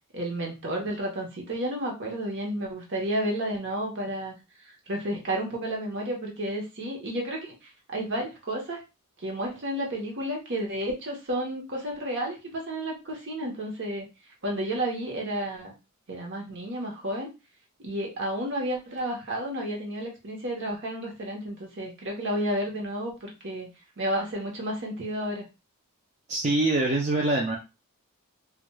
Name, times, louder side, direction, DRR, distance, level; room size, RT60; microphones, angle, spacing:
voice 1, 0.1-4.3 4.9-8.8 9.2-14.1 14.4-15.8 16.1-17.3 17.8-23.7 24.0-25.4, right 1 dB, 55° right, 0 dB, 0.9 m, -31 dB
voice 2, 26.3-27.6, right 2 dB, 30° right, -2 dB, 0.5 m, -24 dB
3.1 x 2.4 x 2.2 m, 0.27 s
head